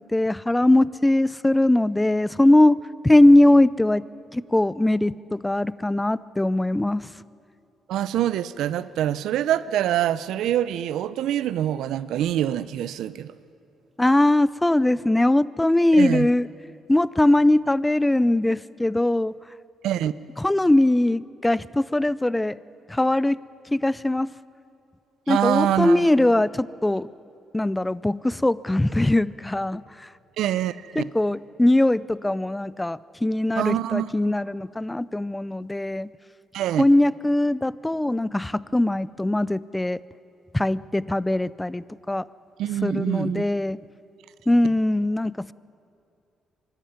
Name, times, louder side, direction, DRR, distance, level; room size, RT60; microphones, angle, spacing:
voice 1, 0.1-4.0 4.3-7.1 14.0-16.5 16.9-19.3 20.4-22.6 22.9-23.4 23.7-24.3 25.3-27.1 27.5-29.8 31.0-36.1 36.8-40.0 40.5-42.2 42.8-43.8 44.5-45.5, left 1 dB, 10° left, 0.4 m, -21 dB
voice 2, 7.9-13.3 15.9-16.3 19.8-20.1 25.3-26.3 30.4-31.1 33.6-34.1 36.5-36.8 42.6-43.4, right 11 dB, 85° right, 0.6 m, -25 dB
23.5 x 13.0 x 9.4 m
cardioid pair, 90°, 0 cm